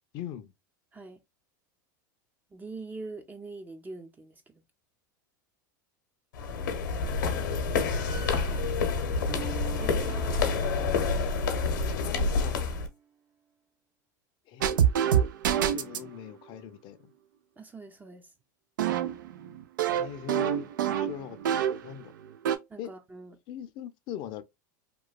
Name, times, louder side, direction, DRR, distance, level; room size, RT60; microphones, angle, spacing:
voice 1, 0.1-0.5 11.9-12.6 14.5-14.7 15.7-17.1 20.0-20.7 21.0-22.1 22.8-22.9 23.5-24.4, left 10 dB, 50° left, 0.5 m, -41 dB
voice 2, 2.5-4.6 17.6-18.3 22.7-23.4, right 3 dB, 15° right, 0.5 m, -43 dB
sound 1, 6.3-12.9, left 4 dB, 80° left, 0.7 m, -28 dB
sound 2, 9.3-12.5, right 3 dB, 35° right, 1.1 m, -43 dB
sound 3, 14.6-16.1 18.8-21.9 22.2-22.6, right 9 dB, 85° right, 0.4 m, -26 dB
3.0 x 2.2 x 2.3 m
hypercardioid pair, 100°, 10 cm